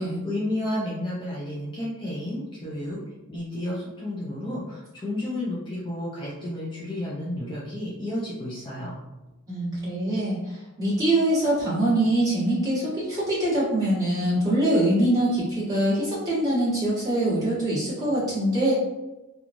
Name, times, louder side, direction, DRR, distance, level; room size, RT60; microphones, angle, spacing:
voice 1, 0.0-3.0 3.3-9.0, left 1 dB, 20° left, -7 dB, 0.5 m, -31 dB
voice 2, 9.5-18.7, right 1 dB, 15° right, -11 dB, 1.4 m, -24 dB
3.0 x 2.3 x 2.5 m, 1.0 s
head